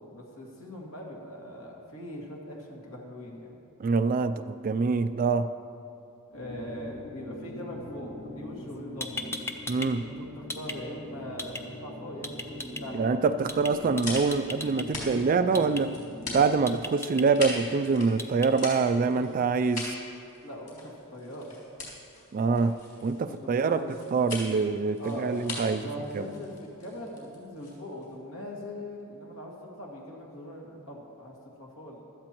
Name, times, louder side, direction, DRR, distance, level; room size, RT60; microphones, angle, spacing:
voice 1, 0.0-3.5 6.3-9.2 10.0-13.0 18.5-19.2 20.4-21.5 23.3-23.8 25.0-32.0, left 1 dB, 65° left, -2 dB, 2.2 m, -41 dB
voice 2, 3.8-5.5 9.7-10.0 12.9-15.9 16.3-19.9 22.3-23.8 24.1-25.9 26.1-26.2, right 4 dB, 40° right, 11 dB, 0.3 m, -25 dB
sound 1, 6.3-16.7, left 1 dB, 85° left, 1.2 m, -43 dB
sound 2, 8.7-8.8 9.0-9.9 10.2-10.8 11.4-11.6 12.2-12.8 13.5-13.7 14.0-14.8 15.5-15.8 16.7-17.2 18.2-18.5, left 2 dB, 10° left, 0.6 m, -36 dB
sound 3, 13.5-28.1, left 2 dB, 35° left, 3.2 m, -41 dB
16.0 x 12.5 x 3.0 m, 2.6 s
head